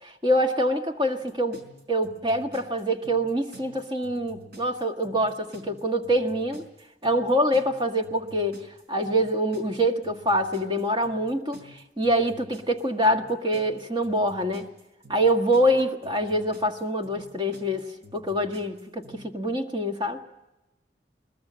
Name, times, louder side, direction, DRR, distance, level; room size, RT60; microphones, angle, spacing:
voice 1, 0.0-1.6 1.9-6.6 7.0-8.6 8.9-14.7 15.1-17.9 18.1-20.2, equal, 25° right, 4 dB, 1.7 m, -25 dB
sound 1, 1.2-19.2, left 1 dB, 65° right, 4.3 m, -49 dB
21.5 x 21.0 x 7.5 m, 0.94 s
head